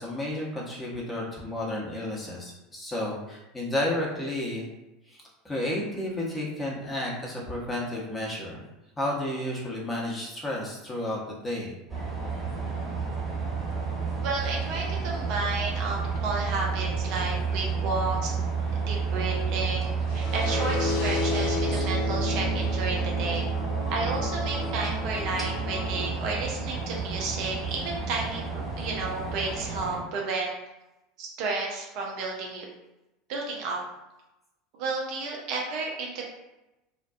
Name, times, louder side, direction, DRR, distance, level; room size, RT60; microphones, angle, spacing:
voice 1, 0.0-4.6 5.1-8.6 9.0-11.8, left 1 dB, 15° left, -4 dB, 0.8 m, -32 dB
sound 1, 11.9-30.0, right 5 dB, 15° right, 1.0 m, -30 dB
voice 2, 14.2-18.3 18.9-23.5 23.9-28.4 28.8-30.5 31.2-32.7 33.3-33.8 34.7-36.3, right 3 dB, 50° right, -1 dB, 0.5 m, -32 dB
sound 2, 20.1-26.1, left 5 dB, 55° left, 0.6 m, -33 dB
2.5 x 2.2 x 2.3 m, 0.97 s
figure-of-eight pair, 75°, 0 cm